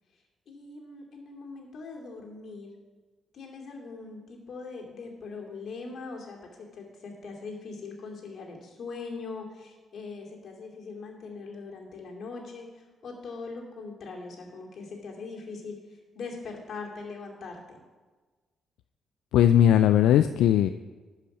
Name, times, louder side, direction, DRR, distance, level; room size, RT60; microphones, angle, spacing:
voice 1, 0.1-2.7 3.3-17.8, left 4 dB, 60° left, 1 dB, 2.5 m, -41 dB
voice 2, 19.3-20.7, left 10 dB, 85° left, 10 dB, 0.3 m, -19 dB
11.5 x 5.7 x 6.2 m, 1.3 s
cardioid pair, 90°, 0 cm